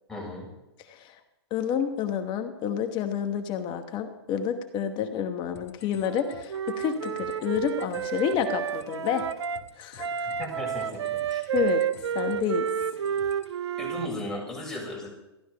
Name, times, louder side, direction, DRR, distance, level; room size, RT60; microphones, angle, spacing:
voice 1, 0.1-0.4 10.4-11.5 13.8-15.1, left 1 dB, 5° left, -4 dB, 6.7 m, -36 dB
voice 2, 0.9-1.2 1.5-9.2 9.8-10.3 11.5-11.8 12.1-12.7, left 8 dB, 35° left, 7 dB, 1.2 m, -29 dB
sound 1, 5.5-13.5, left 6 dB, 75° left, 2.1 m, -50 dB
Wind instrument woodwind instrument, 6.0-9.6 10.0-14.1, right 9 dB, 80° right, 0.6 m, -30 dB
14.5 x 12.0 x 5.2 m, 0.96 s
hypercardioid pair, 115°, 14 cm